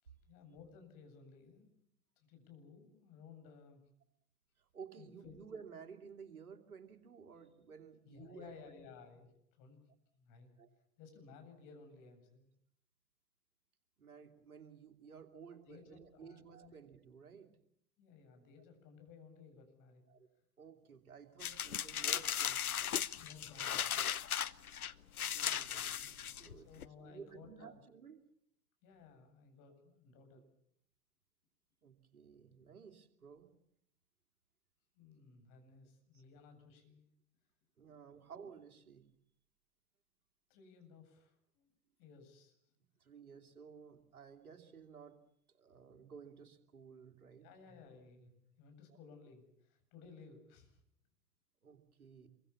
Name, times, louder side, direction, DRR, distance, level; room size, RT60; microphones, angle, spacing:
voice 1, 0.0-1.7 2.2-3.8 5.0-5.4 8.0-10.6 11.0-12.5 15.7-16.8 18.0-20.0 23.1-24.8 25.2-25.9 26.5-27.8 28.8-30.4 34.9-37.0 38.1-38.3 40.5-41.7 42.0-42.5 47.4-48.3 48.6-50.8, left 5 dB, 45° left, 6 dB, 7.9 m, -58 dB
voice 2, 4.6-8.6 10.6-10.7 14.0-17.5 20.1-20.3 20.6-23.0 25.0-25.1 25.3-26.7 27.0-28.2 31.8-33.6 36.1-36.2 37.8-39.1 43.0-45.2 45.5-47.5 48.9-49.0 51.6-52.3, right 6 dB, 75° right, 6 dB, 2.9 m, -55 dB
sound 1, 21.4-26.9, left 9 dB, 75° left, 0.9 m, -37 dB
26.5 x 23.5 x 7.1 m, 0.71 s
figure-of-eight pair, 85°, 43 cm